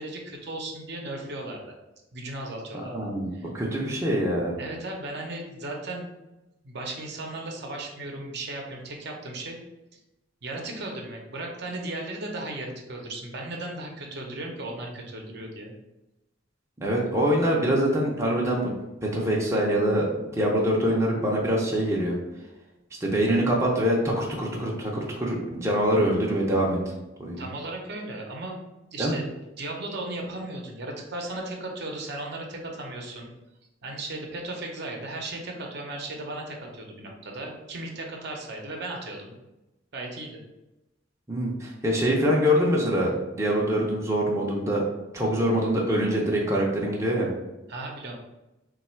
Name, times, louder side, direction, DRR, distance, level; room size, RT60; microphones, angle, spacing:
voice 1, 0.0-1.7 2.1-3.5 4.6-6.1 6.6-9.6 9.9-10.0 10.4-15.7 27.4-28.6 28.9-29.2 29.6-33.3 33.8-39.4 39.9-40.4 47.7-48.2, right 2 dB, 60° right, 1 dB, 0.7 m, -36 dB
voice 2, 2.8-3.3 3.5-4.5 16.8-18.7 19.0-22.2 23.0-26.8 27.2-27.4 29.0-29.2 41.3-44.8 45.1-47.3, equal, 15° right, -3 dB, 0.6 m, -24 dB
3.3 x 2.3 x 4.3 m, 0.97 s
head